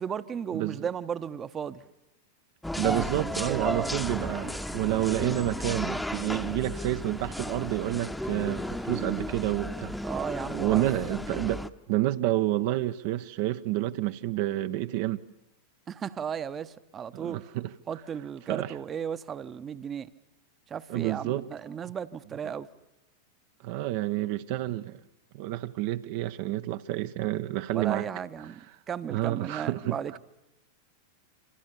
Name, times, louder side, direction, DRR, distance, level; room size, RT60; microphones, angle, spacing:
voice 1, 0.0-1.9 2.8-3.9 10.0-10.8 15.9-17.4 17.9-20.1 20.7-22.7 27.7-28.6 28.9-30.2, right 7 dB, 25° right, 1.1 m, -35 dB
voice 2, 0.5-0.9 2.8-10.0 10.5-11.6 11.9-15.2 17.1-17.7 18.5-18.8 20.9-21.5 22.4-22.5 23.6-25.0 25.3-28.1 29.1-30.2, right 15 dB, 50° right, 0.9 m, -29 dB
sound 1, 2.6-11.7, left 1 dB, 5° left, 1.1 m, -34 dB
28.0 x 27.0 x 7.0 m
figure-of-eight pair, 90°, 0 cm